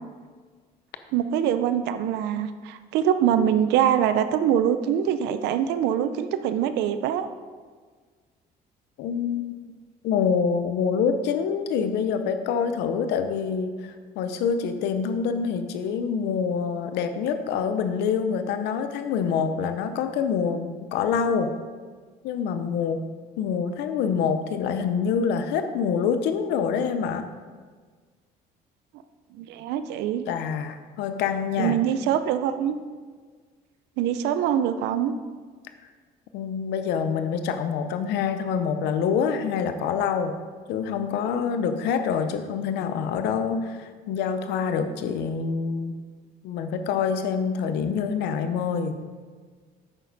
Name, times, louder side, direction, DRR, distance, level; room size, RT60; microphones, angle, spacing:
voice 1, 1.1-7.3 29.3-30.3 31.6-32.8 34.0-35.1, right 9 dB, 90° right, 10 dB, 0.6 m, -24 dB
voice 2, 9.0-9.8 10.0-21.5 22.2-23.0 23.4-27.2 30.3-31.8 36.3-40.3 40.7-45.9 46.4-49.0, left 6 dB, 85° left, 9 dB, 0.7 m, -26 dB
8.9 x 6.5 x 4.1 m, 1.5 s
cardioid pair, 110°, 17 cm